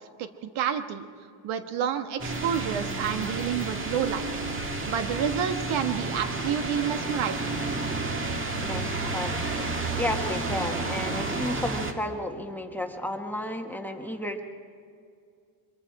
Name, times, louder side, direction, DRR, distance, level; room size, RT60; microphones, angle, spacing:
voice 1, 0.2-1.1 1.4-4.3 4.9-7.5, right 8 dB, 75° right, 8 dB, 1.5 m, -29 dB
sound 1, 2.2-11.9, right 3 dB, 25° right, 1.8 m, -31 dB
voice 2, 8.6-9.5 9.9-14.4, left 1 dB, 5° left, 3 dB, 1.3 m, -32 dB
24.5 x 22.0 x 4.8 m, 2.3 s
cardioid pair, 145°, 48 cm